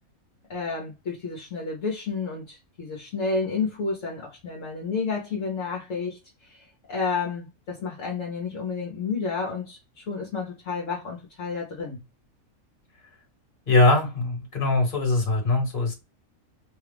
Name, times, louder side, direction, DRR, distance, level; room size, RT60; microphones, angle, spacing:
voice 1, 0.5-12.0, left 4 dB, 60° left, 1.2 m, -31 dB
voice 2, 13.7-15.9, left 2 dB, 40° left, 1.5 m, -21 dB
3.3 x 2.3 x 3.3 m
omnidirectional pair, 1.5 m